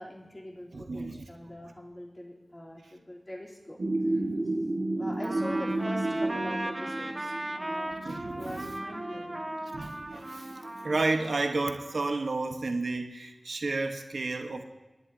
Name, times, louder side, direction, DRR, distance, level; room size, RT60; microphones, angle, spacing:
voice 1, 0.0-3.8 4.1-4.2 4.9-8.0 8.3-9.4, left 1 dB, 25° left, -3 dB, 3.1 m, -43 dB
voice 2, 0.7-1.3 8.0-8.7 9.7-10.5 10.8-14.6, right 3 dB, 80° right, 4 dB, 1.0 m, -31 dB
sound 1, 3.8-11.3, right 2 dB, 60° right, 1.5 m, -33 dB
Trumpet, 5.2-12.3, right 1 dB, 35° right, 1.4 m, -38 dB
28.0 x 11.0 x 2.7 m, 1.2 s
wide cardioid pair, 75°, 0 cm